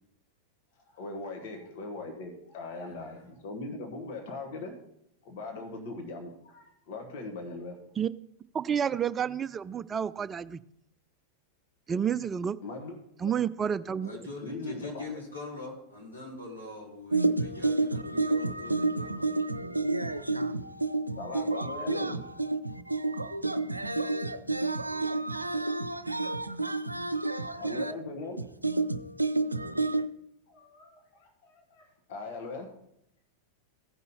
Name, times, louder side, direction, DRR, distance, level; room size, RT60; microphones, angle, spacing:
voice 1, 0.9-4.7 5.2-7.8 12.6-13.0 14.4-15.1 21.2-22.2 27.6-28.4 30.5-32.7, left 3 dB, 50° left, 1.7 m, -40 dB
voice 2, 2.7-3.3 14.0-19.3, left 3 dB, 85° left, 3.5 m, -43 dB
voice 3, 8.5-10.6 11.9-12.6 13.2-14.2, right 8 dB, 20° right, 0.3 m, -30 dB
voice 4, 17.1-27.9 28.6-30.1, right 2 dB, 85° right, 0.5 m, -30 dB
15.0 x 5.4 x 4.3 m
figure-of-eight pair, 90°, 0 cm